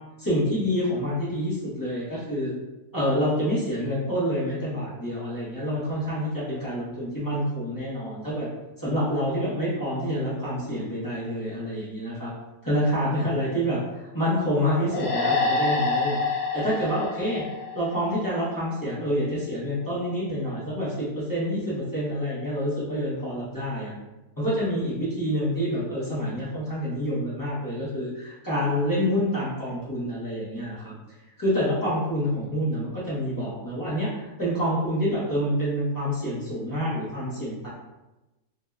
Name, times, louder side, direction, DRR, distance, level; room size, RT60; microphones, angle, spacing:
voice 1, 0.0-2.5 2.9-8.5 8.8-12.3 12.6-17.4 17.7-23.9 24.4-30.9 31.4-37.7, equal, 20° left, -10 dB, 0.5 m, -27 dB
sound 1, 14.9-18.4, left 3 dB, 60° left, 1.0 m, -27 dB
3.4 x 2.2 x 2.3 m, 1.0 s
omnidirectional pair, 1.6 m